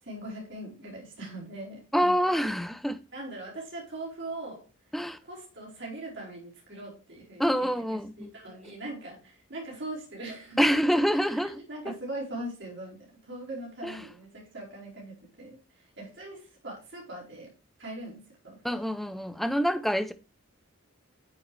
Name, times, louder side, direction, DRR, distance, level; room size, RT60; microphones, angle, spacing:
voice 1, 0.0-2.4 3.1-4.7 5.2-10.8 11.1-11.4 11.7-17.5 17.8-18.8, right 1 dB, 55° right, 4.8 m, -41 dB
voice 2, 1.9-3.0 4.9-5.2 7.4-8.3 10.6-11.6 13.8-13.9 18.6-20.1, equal, ahead, 0.6 m, -26 dB
9.1 x 7.7 x 3.3 m
head